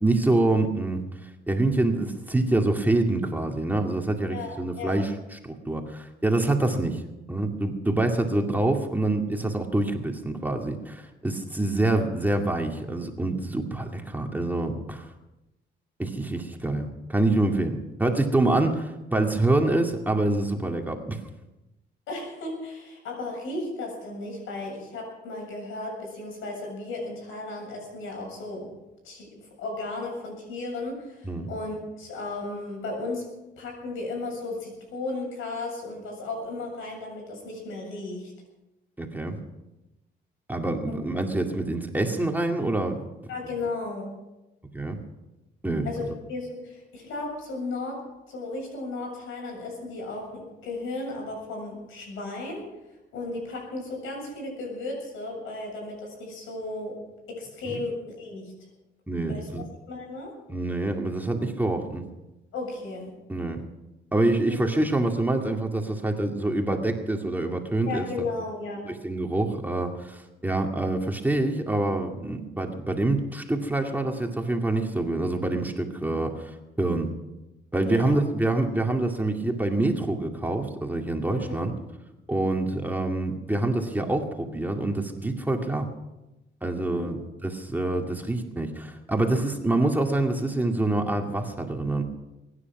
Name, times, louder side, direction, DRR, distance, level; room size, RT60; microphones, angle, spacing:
voice 1, 0.0-5.4 5.7-7.0 7.3-15.1 16.0-21.2 31.2-31.5 39.0-39.4 40.5-43.1 44.7-45.0 45.6-45.9 57.7-57.8 59.1-59.6 60.5-62.0 63.3-63.6 64.1-68.0 68.8-77.1 77.7-81.7 82.3-85.9 86.6-92.0, right 2 dB, 10° right, 2 dB, 2.2 m, -26 dB
voice 2, 4.3-5.0 22.1-28.7 29.0-33.3 33.6-38.3 40.9-41.0 43.3-44.1 45.8-52.6 53.1-57.0 57.3-58.5 59.2-60.3 62.5-63.1 64.5-64.6 67.9-68.8 77.8-78.2 81.3-81.7 86.9-87.1, left 2 dB, 85° left, 1 dB, 7.4 m, -35 dB
22.5 x 10.0 x 6.0 m, 0.98 s
cardioid pair, 90°, 20 cm